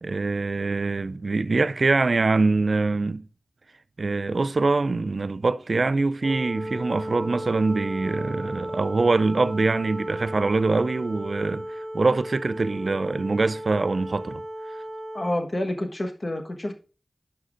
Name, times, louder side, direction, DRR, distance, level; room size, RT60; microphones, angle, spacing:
voice 1, 0.0-3.3 4.0-14.4, right 3 dB, 65° right, 0.4 m, -24 dB
Wind instrument woodwind instrument, 6.2-15.4, equal, 15° right, 4.1 m, -35 dB
voice 2, 15.1-16.7, left 1 dB, 45° left, 1.2 m, -28 dB
11.5 x 5.6 x 2.5 m
wide cardioid pair, 55°, 0 cm